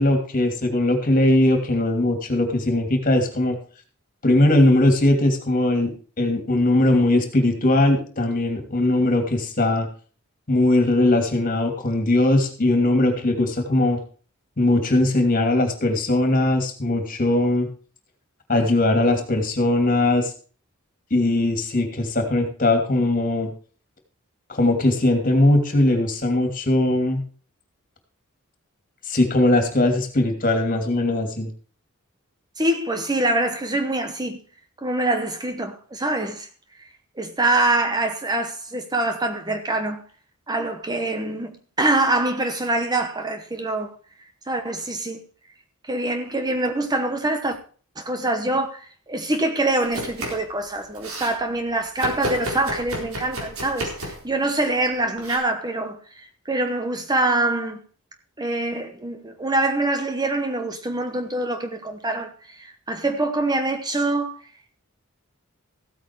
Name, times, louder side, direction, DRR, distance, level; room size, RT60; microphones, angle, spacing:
voice 1, 0.0-3.6 4.2-5.9 6.2-9.9 10.5-14.0 14.6-17.7 18.5-20.3 21.1-23.5 24.5-27.2 29.1-31.5, left 1 dB, 40° left, 2.9 m, -20 dB
voice 2, 32.6-34.4 34.8-36.5 37.2-40.0 40.5-43.9 44.5-45.2 45.8-47.6 48.0-57.8 58.4-64.3, right 2 dB, 20° right, 1.0 m, -24 dB
Domestic sounds home sounds, 49.8-50.5 50.8-51.4 52.0-54.3 55.2-55.4, right 1 dB, 80° right, 4.3 m, -31 dB
15.0 x 8.7 x 4.7 m
head